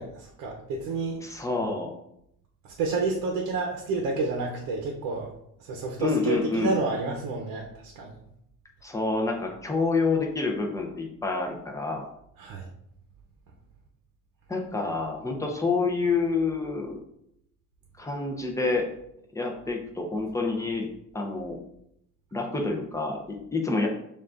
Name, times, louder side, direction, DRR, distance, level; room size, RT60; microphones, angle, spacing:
voice 1, 0.0-1.2 2.8-5.3 5.6-8.2 12.4-12.7, right 3 dB, 90° right, 0 dB, 0.7 m, -29 dB
voice 2, 1.2-1.9 6.0-6.8 8.8-12.1 14.5-17.0 18.0-18.9 19.3-20.9 21.1-21.6 22.3-23.9, left 3 dB, 10° left, 1 dB, 0.6 m, -28 dB
6.9 x 2.5 x 2.5 m, 0.75 s
cardioid pair, 135°, 34 cm